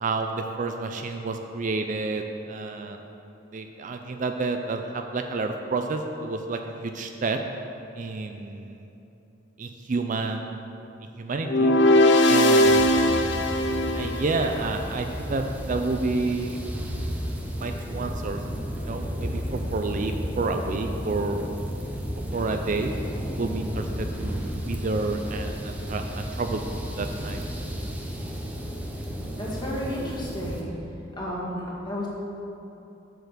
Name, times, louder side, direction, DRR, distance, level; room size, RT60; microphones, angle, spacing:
voice 1, 0.0-3.0 3.5-7.4 8.0-8.9 9.6-10.6 11.2-11.7 12.3-13.4 13.9-16.6 16.9-17.0 17.6-18.4 18.8-21.5 22.3-22.9 23.4-27.4, right 3 dB, 40° right, 5 dB, 0.4 m, -30 dB
sound 1, 11.4-14.7, left 1 dB, 60° left, 0.7 m, -20 dB
sound 2, 12.6-30.6, equal, 5° right, 0.9 m, -33 dB
voice 2, 29.4-30.7 31.2-32.1, equal, 25° left, -5 dB, 1.9 m, -32 dB
8.0 x 6.8 x 6.7 m, 3.0 s
head